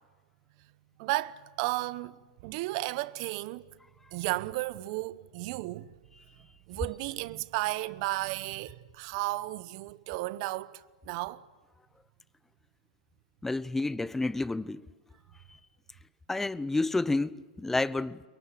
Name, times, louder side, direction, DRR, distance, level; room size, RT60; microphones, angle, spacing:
voice 1, 1.0-3.6 4.1-5.9 6.7-11.4, right 19 dB, 55° right, 1.0 m, -34 dB
voice 2, 13.4-14.8 16.3-18.2, left 2 dB, 5° left, 0.8 m, -30 dB
28.5 x 23.0 x 7.7 m
hypercardioid pair, 120°, 4 cm